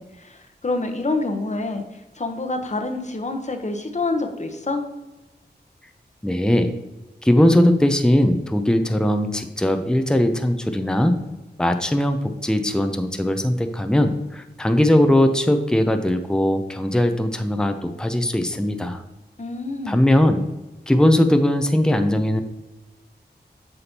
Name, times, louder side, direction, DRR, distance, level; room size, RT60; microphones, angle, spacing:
voice 1, 0.0-1.8 2.1-4.8 19.4-20.0, left 2 dB, 40° left, 5 dB, 1.0 m, -27 dB
voice 2, 6.2-6.7 7.2-11.1 11.6-19.0 19.9-20.4 20.9-22.4, left 1 dB, 5° left, 7 dB, 0.6 m, -19 dB
8.0 x 5.2 x 2.9 m, 1.1 s
cardioid pair, 50°, 18 cm